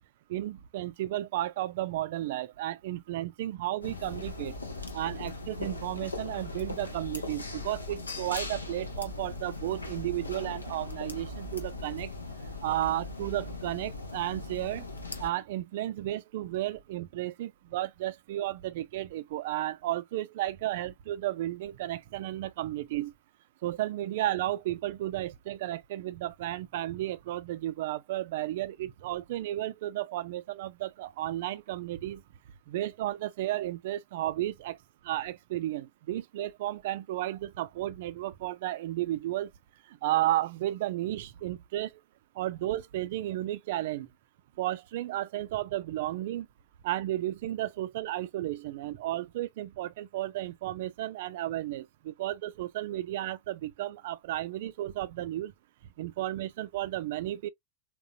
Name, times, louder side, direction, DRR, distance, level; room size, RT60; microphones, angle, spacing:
voice 1, 0.3-4.6 4.9-12.1 12.6-14.8 15.2-23.1 23.6-32.2 32.7-34.8 35.0-39.5 39.9-42.0 42.4-44.1 44.6-46.5 46.8-55.5 56.0-57.5, right 14 dB, 55° right, 0.3 m, -33 dB
sound 1, 3.8-15.3, left 3 dB, 80° left, 0.6 m, -39 dB
3.7 x 2.4 x 2.4 m
figure-of-eight pair, 90°, 0 cm